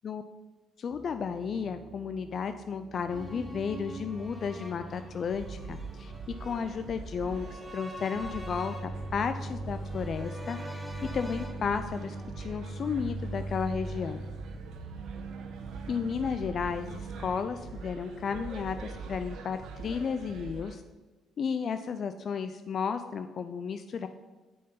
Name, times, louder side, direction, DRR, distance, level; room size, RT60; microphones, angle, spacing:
voice 1, 0.8-6.1 6.4-10.8 11.1-14.2 15.9-20.8 21.4-24.1, left 6 dB, 55° left, 10 dB, 0.4 m, -33 dB
sound 1, 0.9-17.6, right 2 dB, 50° right, 1.4 m, -42 dB
sound 2, 3.1-13.2 13.5-13.6, equal, 5° left, 1.5 m, -46 dB
sound 3, 5.3-20.7, right 4 dB, 70° right, 1.1 m, -43 dB
7.7 x 5.0 x 5.5 m, 1.2 s
supercardioid pair, 70°, 0 cm